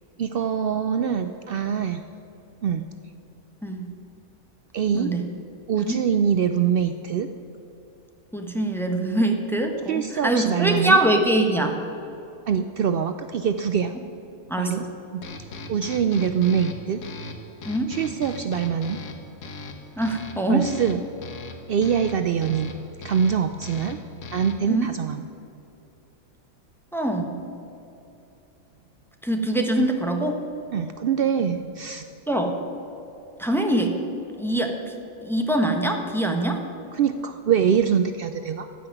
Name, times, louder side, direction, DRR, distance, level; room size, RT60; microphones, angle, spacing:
voice 1, 0.2-2.0 2.6-2.9 4.7-5.1 5.7-7.3 9.9-11.0 12.5-14.0 14.6-14.9 15.1-15.2 15.7-17.0 17.9-19.0 20.5-21.0 21.7-22.8 23.0-24.0 24.3-25.2 30.7-32.0 36.9-38.7, right 7 dB, 80° right, 8 dB, 0.5 m, -24 dB
voice 2, 8.3-11.7 14.5-14.9 17.7-17.9 20.0-20.7 24.7-24.9 26.9-27.4 29.2-30.4 32.3-32.5 33.4-33.9 34.4-34.7 35.2-36.6, right 1 dB, ahead, 3 dB, 1.0 m, -23 dB
sound 1, 15.2-24.8, left 3 dB, 75° left, 1.5 m, -39 dB
14.5 x 5.9 x 9.1 m, 2.8 s
omnidirectional pair, 1.5 m